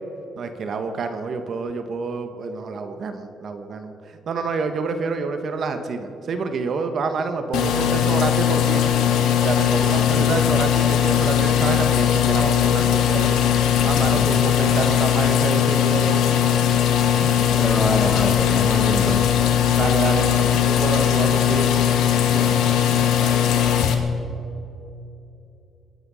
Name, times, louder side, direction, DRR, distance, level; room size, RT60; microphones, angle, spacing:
voice 1, 0.4-8.8 9.4-13.4 13.8-16.2 19.7-21.7 23.2-23.4, right 4 dB, 55° right, 7 dB, 1.3 m, -28 dB
sound 1, 7.5-23.9, left 9 dB, 90° left, 1.6 m, -19 dB
voice 2, 17.0-19.3 22.3-22.6, left 1 dB, ahead, 1 dB, 1.6 m, -27 dB
23.5 x 9.6 x 6.4 m, 2.9 s
cardioid pair, 90°, 0 cm